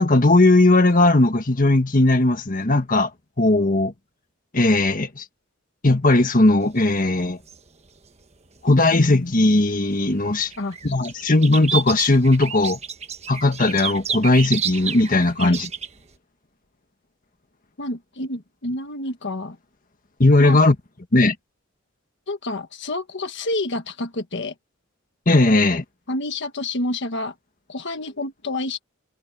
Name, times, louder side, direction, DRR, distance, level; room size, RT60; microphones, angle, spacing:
voice 1, 0.0-3.1 3.4-3.9 4.5-5.2 5.8-7.4 8.6-10.5 10.8-12.8 13.3-15.7 20.2-20.7 21.1-21.3 25.3-25.8, left 2 dB, 40° left, 1.6 m, -17 dB
sound 1, 6.7-9.2 9.6-16.0, right 7 dB, 30° right, 1.3 m, -31 dB
voice 2, 8.7-9.3 10.6-10.9 15.4-15.6 17.8-19.6 20.4-20.6 22.3-24.5 25.4-25.6 26.1-27.4 27.7-28.8, left 2 dB, 60° left, 1.5 m, -29 dB
head